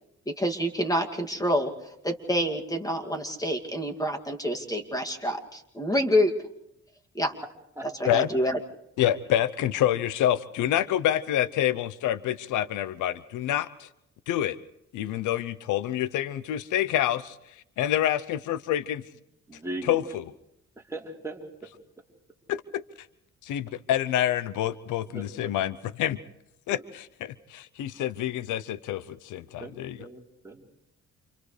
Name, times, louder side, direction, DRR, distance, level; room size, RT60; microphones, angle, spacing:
voice 1, 0.3-1.7 2.0-6.3 7.1-7.3 8.0-8.6, equal, 10° left, 2 dB, 2.5 m, -27 dB
voice 2, 9.0-13.9 14.3-14.6 14.9-17.4 17.8-19.0 19.8-20.2 22.5-22.8 23.4-26.2 26.7-30.0, left 12 dB, 85° left, 16 dB, 0.8 m, -27 dB
voice 3, 19.5-20.0 20.9-21.4 25.1-25.5 29.6-30.7, right 1 dB, 10° right, -2 dB, 4.1 m, -38 dB
29.5 x 28.5 x 3.3 m, 0.81 s
cardioid pair, 90°, 30 cm